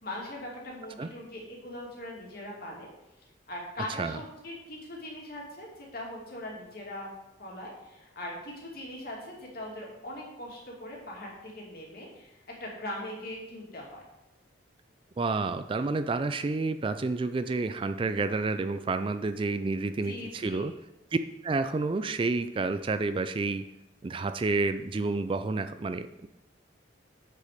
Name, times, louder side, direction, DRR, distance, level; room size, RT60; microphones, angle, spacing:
voice 1, 0.0-2.9 3.5-7.1 7.4-14.0 19.8-20.7, left 1 dB, 55° left, -3 dB, 2.7 m, -41 dB
voice 2, 15.2-20.7 21.1-21.2 21.4-23.7 24.0-26.3, right 3 dB, 30° right, 11 dB, 0.3 m, -29 dB
8.1 x 6.8 x 5.1 m, 0.91 s
head